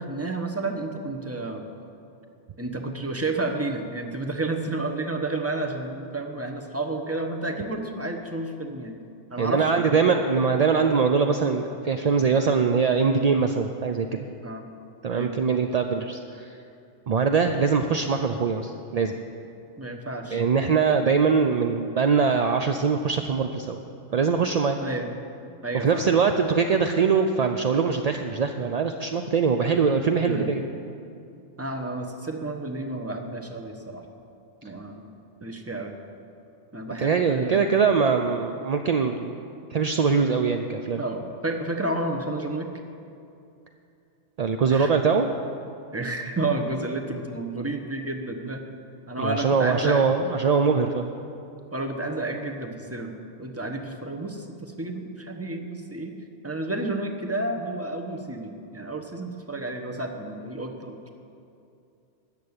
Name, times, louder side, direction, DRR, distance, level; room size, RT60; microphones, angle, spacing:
voice 1, 0.0-1.6 2.6-9.0 9.3-10.1 14.4-14.6 15.1-15.3 19.8-20.4 24.8-25.1 25.6-26.0 30.3-30.5 31.6-34.0 34.6-35.1 35.4-35.9 36.7-37.7 41.0-42.7 44.7-44.9 45.9-48.6 49.1-50.0 51.7-56.1 56.4-61.1, right 2 dB, 15° right, 3 dB, 1.0 m, -31 dB
voice 2, 9.4-14.1 15.0-16.6 17.1-19.1 20.3-23.8 24.1-24.8 25.7-30.6 37.0-39.4 39.7-41.0 44.4-45.3 49.2-51.1, right 5 dB, 50° right, 6 dB, 0.4 m, -22 dB
14.5 x 6.8 x 9.7 m, 2.6 s
omnidirectional pair, 1.3 m